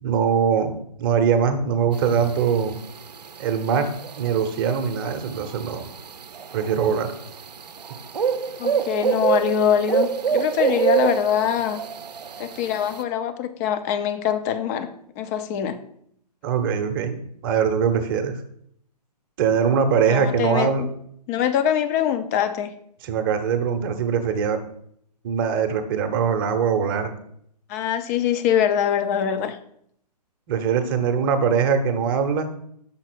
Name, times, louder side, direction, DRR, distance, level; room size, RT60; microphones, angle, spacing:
voice 1, 0.0-2.8 3.4-3.9 4.2-5.8 6.5-7.1 16.4-18.4 19.4-20.9 23.0-24.6 25.2-27.1 30.5-32.5, right 7 dB, 35° right, 6 dB, 0.8 m, -22 dB
sound 1, 1.9-13.0, right 7 dB, 75° right, 0.6 m, -27 dB
voice 2, 8.6-11.8 12.4-14.9 15.2-15.8 20.1-20.9 21.3-22.7 27.7-29.6, left 9 dB, 25° left, 10 dB, 0.5 m, -23 dB
5.9 x 4.0 x 6.1 m, 0.68 s
figure-of-eight pair, 125°, 21 cm